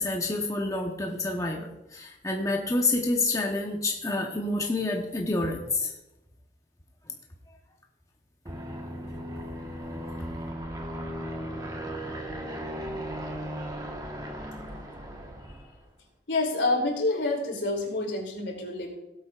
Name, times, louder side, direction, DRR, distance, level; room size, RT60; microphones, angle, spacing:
voice 1, 0.0-5.9, left 2 dB, 20° left, 1 dB, 0.9 m, -28 dB
Aircraft, 8.5-15.8, equal, 20° right, 1.3 m, -37 dB
voice 2, 16.3-18.9, left 2 dB, 85° left, 0 dB, 2.9 m, -27 dB
18.0 x 8.4 x 2.4 m, 0.92 s
head